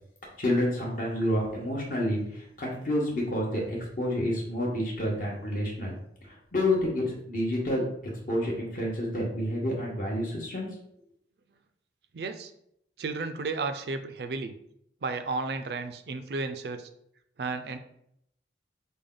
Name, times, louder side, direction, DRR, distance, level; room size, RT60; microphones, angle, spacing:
voice 1, 0.4-6.0 6.2-7.8 8.3-10.7, left 1 dB, 50° left, -3 dB, 1.0 m, -29 dB
voice 2, 12.1-12.5 13.0-14.6 15.0-16.9 17.4-17.8, right 3 dB, 65° right, 8 dB, 0.4 m, -33 dB
5.1 x 2.2 x 3.7 m, 0.73 s
head